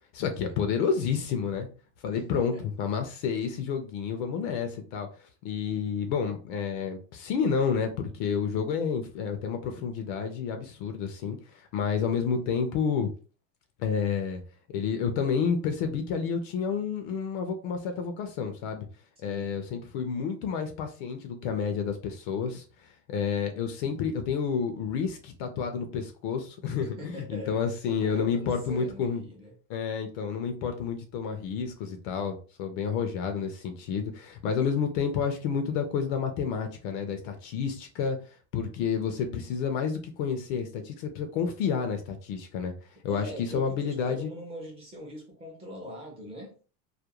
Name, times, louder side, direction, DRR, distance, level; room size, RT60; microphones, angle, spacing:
voice 1, 0.1-1.7 2.0-13.1 13.8-14.4 14.7-18.9 19.2-29.2 29.7-38.2 38.5-42.7 43.0-44.3, left 6 dB, 45° left, 0.4 m, -30 dB
voice 2, 2.1-2.6 19.2-19.7 26.8-29.5 43.1-46.5, equal, 15° right, 0.5 m, -42 dB
2.3 x 2.1 x 2.9 m
supercardioid pair, 165°, 37 cm